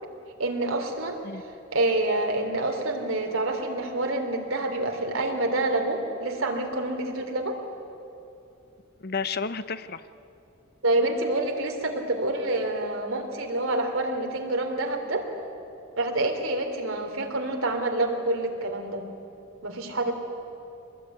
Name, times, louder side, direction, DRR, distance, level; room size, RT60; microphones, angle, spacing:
voice 1, 0.4-1.2 1.7-7.6 10.8-15.3 16.0-19.1 19.6-20.1, right 2 dB, 85° right, 3 dB, 3.4 m, -27 dB
voice 2, 9.0-10.0, left 5 dB, 50° left, 13 dB, 0.8 m, -31 dB
24.5 x 20.0 x 9.4 m, 2.7 s
head